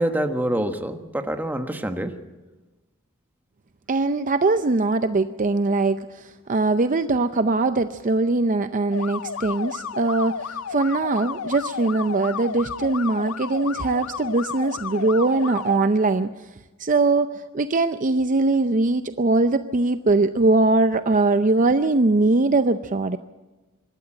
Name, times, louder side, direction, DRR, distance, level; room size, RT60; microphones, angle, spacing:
voice 1, 0.0-2.2, right 1 dB, 10° right, 6 dB, 1.3 m, -26 dB
voice 2, 3.9-16.3 16.8-23.2, right 3 dB, 40° right, 10 dB, 0.6 m, -21 dB
sound 1, 8.9-15.8, left 7 dB, 75° left, 0.6 m, -32 dB
25.0 x 13.0 x 8.9 m, 1.2 s
head